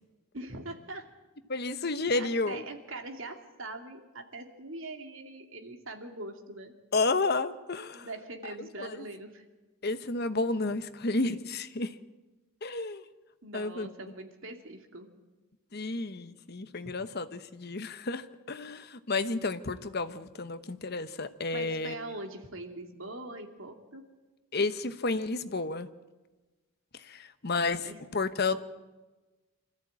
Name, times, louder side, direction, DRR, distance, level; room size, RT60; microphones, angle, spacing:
voice 1, 0.3-1.1 2.1-6.7 7.9-9.4 13.4-15.1 16.8-16.9 21.5-24.0 27.8-28.0 28.5-28.6, right 2 dB, 65° right, 4 dB, 2.6 m, -42 dB
voice 2, 1.5-2.7 6.9-8.1 8.6-9.0 9.8-11.9 12.6-13.0 13.5-13.9 15.7-21.9 24.5-25.9 26.9-28.6, left 3 dB, 50° left, 11 dB, 1.0 m, -31 dB
24.5 x 14.0 x 8.7 m, 1.2 s
head